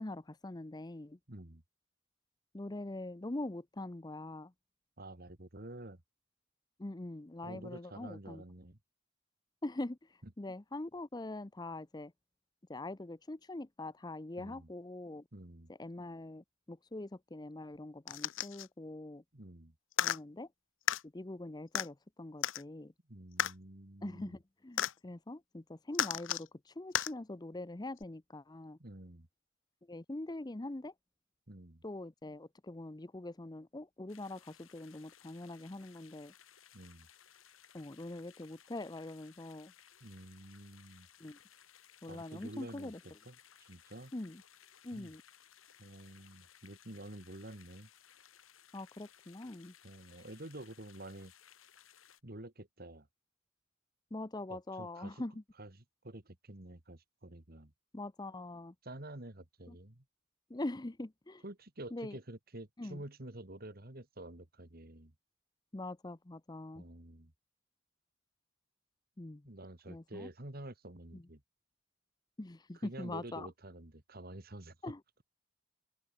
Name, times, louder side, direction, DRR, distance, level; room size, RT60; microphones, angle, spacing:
voice 1, 0.0-1.2 2.5-4.5 6.8-8.4 9.6-10.0 10.4-12.1 12.7-15.2 15.7-19.2 20.0-20.5 21.1-22.9 24.0-28.8 29.9-30.9 31.8-36.3 37.7-39.7 41.2-41.4 42.0-43.0 44.1-44.4 44.8-45.2 48.7-49.7 54.1-55.4 57.9-58.7 59.7-59.8 60.5-61.4 61.9-62.2 62.8-63.0 65.7-66.8 69.2-69.4 69.9-70.3 71.1-71.2 72.4-73.5 74.8-75.0, left 2 dB, 20° left, 0.6 m, -43 dB
voice 2, 1.3-1.6 5.0-6.0 7.4-8.8 14.4-14.7 15.3-15.7 19.3-19.7 23.1-24.4 28.8-29.3 31.5-31.8 36.7-37.1 40.0-41.1 42.1-44.1 44.9-45.1 45.8-47.9 49.8-51.3 52.2-53.1 54.5-55.2 55.6-55.8 56.0-57.7 58.8-60.0 61.4-65.1 66.7-67.3 69.4-71.4 72.7-74.8, right 1 dB, 50° right, 2.3 m, -49 dB
sound 1, 18.1-18.7 19.9-20.2 20.9-21.0 21.7-21.9 22.4-22.6 23.4-23.5 24.8-24.9 25.9-26.5 26.9-27.1 28.0-28.1, left 10 dB, 70° left, 0.7 m, -33 dB
sound 2, 34.1-52.2, left 9 dB, 90° left, 3.4 m, -61 dB
open air
head